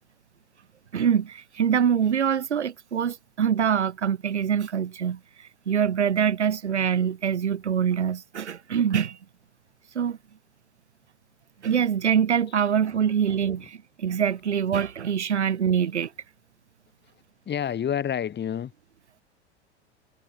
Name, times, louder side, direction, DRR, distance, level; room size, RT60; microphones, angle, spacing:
voice 1, 0.9-5.2 5.7-9.2 10.0-10.2 11.6-16.1, right 8 dB, 80° right, 7.2 m, -24 dB
voice 2, 17.5-18.7, left 9 dB, 30° left, 7.9 m, -28 dB
hypercardioid pair, 85°, 34 cm